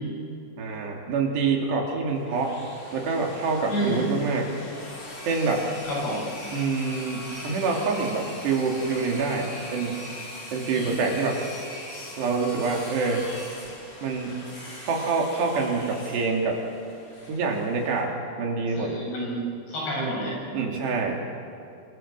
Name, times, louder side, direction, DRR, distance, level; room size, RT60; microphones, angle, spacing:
voice 1, 0.6-2.6 2.9-4.6 5.3-5.7 6.5-10.1 10.5-11.4 12.2-13.3 14.0-14.4 14.8-16.6 17.3-19.0 20.5-21.2, right 4 dB, 65° right, 1 dB, 5.0 m, -26 dB
sound 1, 2.1-18.0, left 1 dB, 30° left, 5.3 m, -41 dB
voice 2, 3.7-4.0 5.8-6.3 10.7-10.9 18.8-20.4, right 1 dB, 65° left, -3 dB, 10.0 m, -29 dB
27.0 x 26.0 x 7.8 m, 2.5 s
omnidirectional pair, 5.4 m